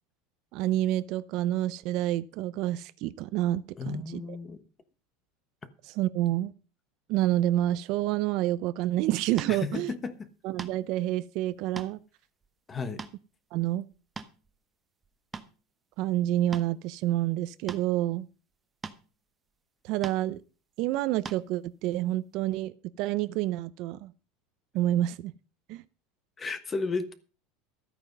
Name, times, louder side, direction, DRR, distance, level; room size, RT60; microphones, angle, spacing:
voice 1, 0.5-4.4 6.0-6.5 7.1-9.9 10.4-12.0 13.5-13.8 16.0-18.3 19.8-20.4 20.8-24.1 24.7-25.3 25.7-25.8, right 14 dB, 50° right, 0.6 m, -28 dB
voice 2, 3.8-4.6 9.5-10.3 12.7-13.0 26.4-27.1, left 4 dB, 20° left, 1.2 m, -33 dB
sound 1, 9.4-9.6 10.6-10.9 11.5-11.9 12.4-12.5 13.0-13.2 13.9-14.5 15.0-15.5 16.5-16.7 17.7-17.9 18.8-19.0 20.0-20.2 21.2-21.4, right 4 dB, 15° right, 0.9 m, -40 dB
13.5 x 9.0 x 5.4 m
supercardioid pair, 155°, 0 cm